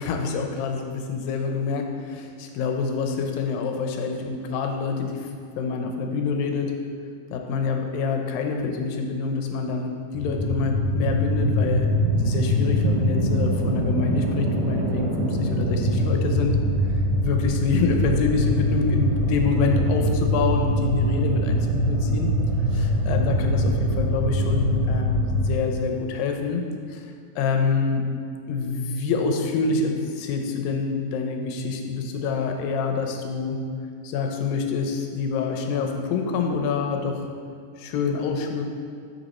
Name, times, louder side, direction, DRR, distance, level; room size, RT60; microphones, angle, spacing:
voice 1, 0.0-5.3 5.6-6.7 7.3-16.6 17.2-22.3 22.7-26.6 26.9-28.1 28.5-33.6 34.0-37.2 37.8-38.6, left 5 dB, 80° left, 3 dB, 2.4 m, -26 dB
sound 1, 10.1-25.6, equal, 70° right, 2.1 m, -23 dB
8.0 x 5.9 x 4.2 m, 2.1 s
omnidirectional pair, 4.2 m